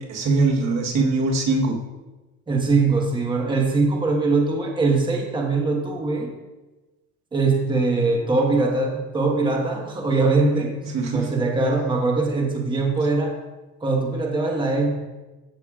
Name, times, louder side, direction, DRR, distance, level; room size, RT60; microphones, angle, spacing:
voice 1, 0.1-1.8 10.8-11.3, right 3 dB, 50° right, 0 dB, 1.2 m, -22 dB
voice 2, 2.5-6.3 7.3-10.7 11.1-13.3 13.8-14.9, right 3 dB, 15° right, 0 dB, 1.3 m, -22 dB
14.0 x 6.5 x 2.4 m, 1.1 s
cardioid pair, 140°, 34 cm